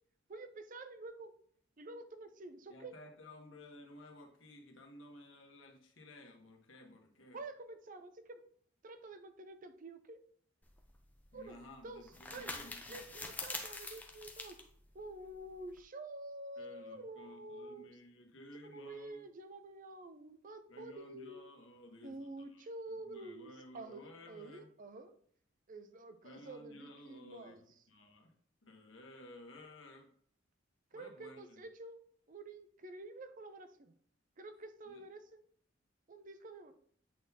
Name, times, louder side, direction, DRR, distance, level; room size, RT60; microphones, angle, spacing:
voice 1, 0.3-1.3 1.8-3.0 7.3-8.4 8.8-10.2 11.3-12.5 12.9-14.6 14.9-17.9 18.6-21.4 22.0-25.1 25.7-27.6 30.9-33.9 34.4-35.4 36.1-36.8, right 2 dB, 40° right, 9 dB, 0.6 m, -49 dB
voice 2, 2.7-7.4 11.3-13.0 16.6-19.3 20.7-24.7 26.2-28.3 28.6-30.1 30.9-31.6 34.8-35.0, left 1 dB, 75° left, 2 dB, 1.3 m, -55 dB
sound 1, 10.6-15.8, left 2 dB, 10° left, 0.6 m, -46 dB
8.3 x 4.0 x 2.8 m, 0.63 s
head